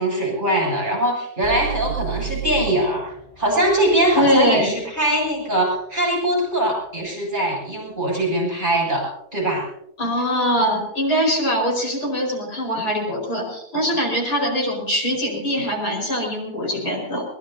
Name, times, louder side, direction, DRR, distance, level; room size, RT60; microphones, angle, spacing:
voice 1, 0.0-9.7, right 1 dB, 30° right, -3 dB, 8.0 m, -22 dB
sound 1, 1.4-5.4, right 10 dB, 20° left, 6.8 m, -33 dB
voice 2, 4.1-4.8 10.0-17.2, equal, 70° left, 0 dB, 5.5 m, -22 dB
22.5 x 21.0 x 2.8 m, 0.72 s
omnidirectional pair, 1.7 m